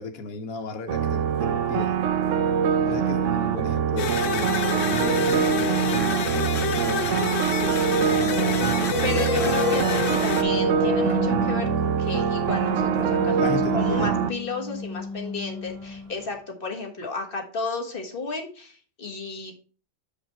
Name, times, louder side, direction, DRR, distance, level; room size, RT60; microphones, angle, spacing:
voice 1, 0.0-2.0 2.9-7.3 8.0-8.6 13.3-14.1, left 3 dB, 85° left, 1.4 m, -34 dB
sound 1, 0.9-14.3, right 8 dB, 65° right, 0.9 m, -24 dB
sound 2, 4.0-10.4, left 9 dB, 60° left, 0.9 m, -28 dB
sound 3, 7.5-16.3, left 2 dB, 20° right, 3.0 m, -31 dB
voice 2, 9.0-19.6, left 4 dB, 40° left, 1.6 m, -33 dB
7.3 x 5.1 x 4.4 m
omnidirectional pair, 1.5 m